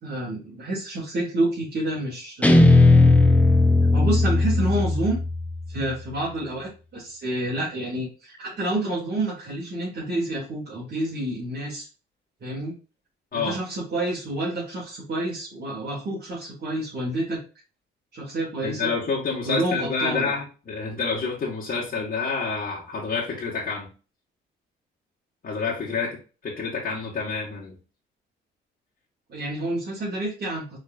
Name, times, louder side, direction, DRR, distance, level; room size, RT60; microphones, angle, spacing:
voice 1, 0.0-2.7 3.9-5.2 5.7-11.9 12.4-12.7 13.3-17.4 18.1-18.9 19.4-20.3 29.3-30.8, right 1 dB, 55° right, -7 dB, 2.5 m, -29 dB
Guitar, 2.4-5.6, left 2 dB, 5° left, 0.8 m, -17 dB
voice 2, 18.6-23.9 25.4-26.2 26.4-27.8, left 4 dB, 45° left, -5 dB, 1.7 m, -28 dB
5.1 x 4.0 x 2.6 m, 0.33 s
cardioid pair, 90°, 20 cm